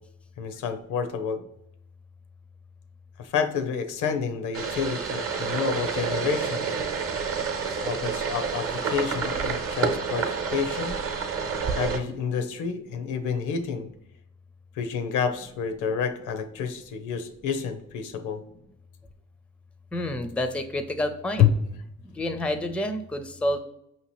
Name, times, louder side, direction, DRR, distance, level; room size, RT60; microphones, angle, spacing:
voice 1, 0.4-1.4 3.2-6.7 7.7-11.0 11.7-13.9 14.7-18.4 21.4-21.5, left 7 dB, 80° left, 8 dB, 0.6 m, -28 dB
sound 1, 4.5-12.0, right 5 dB, 50° right, 0.8 m, -29 dB
voice 2, 19.9-21.5 22.0-23.6, left 1 dB, 5° left, 8 dB, 0.4 m, -29 dB
5.2 x 2.8 x 3.0 m, 0.80 s
cardioid pair, 90°, 30 cm